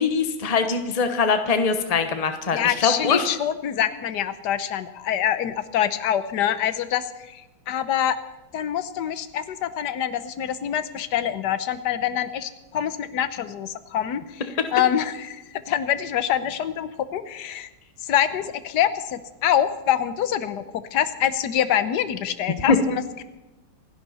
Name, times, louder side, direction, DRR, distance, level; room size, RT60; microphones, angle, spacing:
voice 1, 0.0-3.3 22.7-22.8, left 5 dB, 40° left, 7 dB, 0.5 m, -22 dB
voice 2, 2.5-8.2 8.5-14.4 14.7-17.7 18.0-20.6 20.9-23.2, left 10 dB, 60° left, 12 dB, 1.3 m, -25 dB
27.5 x 11.0 x 4.2 m, 1.0 s
omnidirectional pair, 2.4 m